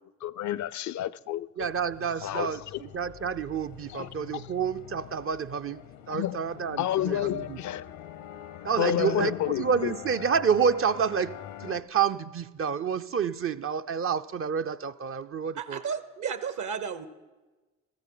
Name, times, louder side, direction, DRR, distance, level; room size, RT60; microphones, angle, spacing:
voice 1, 0.2-1.5 2.2-2.8 3.9-4.4 6.1-6.4 6.8-7.8 8.8-9.9, left 12 dB, 55° left, 0.4 m, -30 dB
sound 1, 1.6-11.8, left 10 dB, 85° left, 0.9 m, -45 dB
voice 2, 1.6-7.6 8.6-15.8, right 7 dB, 40° right, 0.5 m, -29 dB
voice 3, 15.6-17.1, right 6 dB, 60° right, 1.0 m, -33 dB
14.5 x 14.0 x 3.9 m
hypercardioid pair, 45°, 34 cm